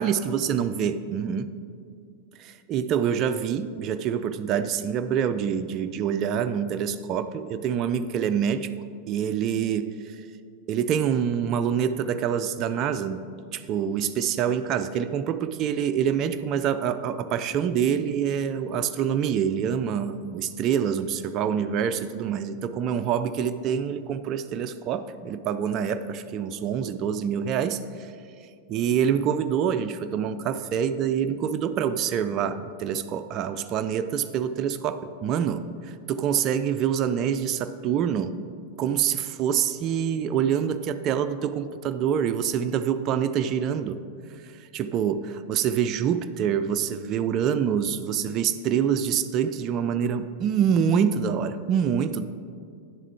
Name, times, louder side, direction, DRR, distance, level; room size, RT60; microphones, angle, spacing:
voice 1, 0.0-1.5 2.4-8.7 9.1-10.3 10.7-13.3 13.5-28.1 28.7-38.3 38.8-44.0 44.4-52.2, right 8 dB, 35° right, 9 dB, 0.3 m, -26 dB
10.5 x 7.2 x 3.3 m, 2.3 s
figure-of-eight pair, 90°, 0 cm